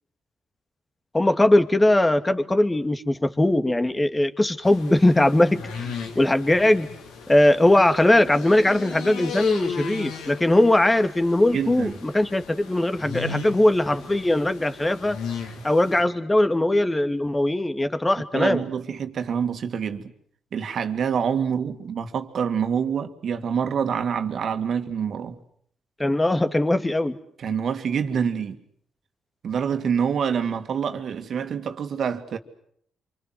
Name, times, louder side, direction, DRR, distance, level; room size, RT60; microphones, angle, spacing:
voice 1, 1.1-6.9 7.3-15.2 15.6-18.6 26.0-27.2, left 1 dB, 20° left, 2.6 m, -20 dB
sound 1, 4.6-16.0, left 6 dB, 85° left, 3.5 m, -36 dB
voice 2, 11.5-12.0 15.5-15.6 18.3-20.1 20.5-25.4 27.4-28.6 29.4-32.4, right 7 dB, 60° right, 2.5 m, -26 dB
27.5 x 25.5 x 7.9 m
supercardioid pair, 55°, 0 cm